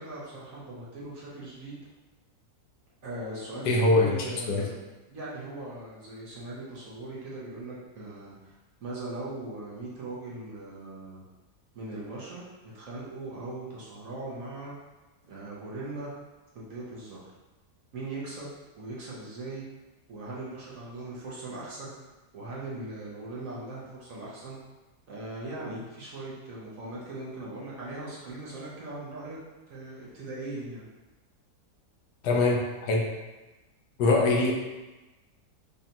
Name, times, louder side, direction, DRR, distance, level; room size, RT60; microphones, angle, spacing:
voice 1, 0.0-1.8 3.0-4.8 5.1-8.5 8.8-11.2 11.7-12.4 12.7-14.7 15.2-16.1 16.5-17.3 17.9-19.6 20.1-21.9 22.3-24.6 25.1-29.4 29.7-30.9, right 2 dB, 60° right, -6 dB, 1.1 m, -39 dB
voice 2, 3.6-4.6 32.2-33.0 34.0-34.5, left 2 dB, 75° left, -1 dB, 1.2 m, -23 dB
5.1 x 2.3 x 2.8 m, 1.1 s
omnidirectional pair, 1.8 m